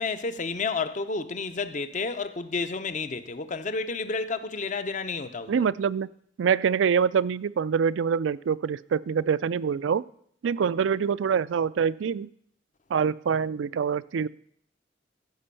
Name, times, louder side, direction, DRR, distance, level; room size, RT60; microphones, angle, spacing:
voice 1, 0.0-5.6, left 4 dB, 40° left, 0.6 m, -31 dB
voice 2, 5.5-6.1 6.4-10.0 10.4-12.3 12.9-14.3, right 6 dB, 80° right, 0.4 m, -25 dB
15.5 x 5.2 x 6.8 m
head